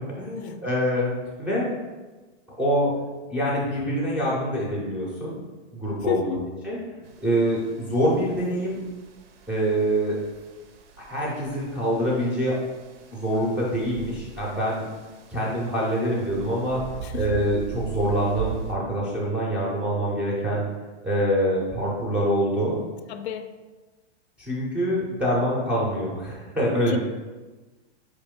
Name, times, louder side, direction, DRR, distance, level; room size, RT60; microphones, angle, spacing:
voice 1, 0.2-1.1 1.4-1.7 2.6-2.9 3.3-5.4 5.7-6.8 7.2-8.8 9.5-10.2 11.0-12.6 13.1-14.8 15.3-16.8 17.1-20.7 21.0-22.8 24.4-27.0, equal, 5° right, -6 dB, 0.4 m, -25 dB
voice 2, 6.0-6.4 17.0-17.3 23.1-23.5 26.9-27.0, left 10 dB, 70° left, 9 dB, 0.5 m, -31 dB
sound 1, 7.0-18.7, right 7 dB, 85° right, 0.7 m, -40 dB
4.3 x 3.0 x 3.5 m, 1.2 s
supercardioid pair, 155°, 34 cm